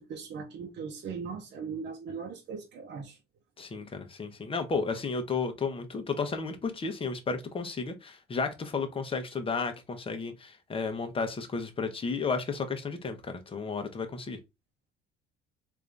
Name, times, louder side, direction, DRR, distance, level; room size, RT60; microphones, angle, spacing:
voice 1, 0.0-3.2, right 5 dB, 55° right, 0.8 m, -39 dB
voice 2, 3.6-14.4, left 4 dB, 25° left, 0.9 m, -33 dB
3.4 x 2.6 x 3.3 m
cardioid pair, 95°, 21 cm